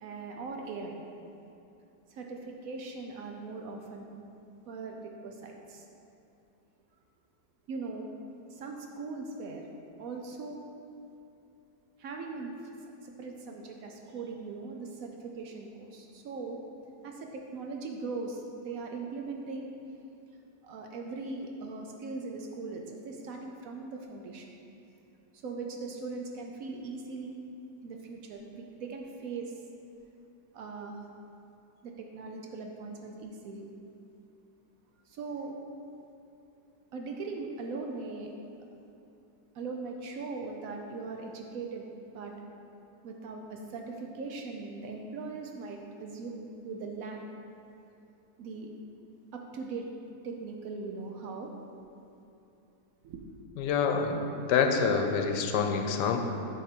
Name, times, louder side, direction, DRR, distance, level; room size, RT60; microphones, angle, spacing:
voice 1, 0.0-1.0 2.1-4.1 4.7-5.9 7.7-8.1 8.5-9.7 10.0-10.6 12.0-12.5 13.0-16.6 17.0-19.8 20.6-24.6 25.3-27.4 27.8-29.5 30.5-31.0 31.8-33.7 35.1-35.6 36.9-38.3 39.5-41.9 42.1-42.3 43.0-47.2 48.4-48.7 49.3-49.9 50.2-51.5 53.0-53.2, right 4 dB, 65° right, 2 dB, 0.9 m, -40 dB
voice 2, 53.6-56.2, left 5 dB, 90° left, 5 dB, 1.3 m, -27 dB
9.9 x 3.7 x 4.3 m, 2.7 s
omnidirectional pair, 1.8 m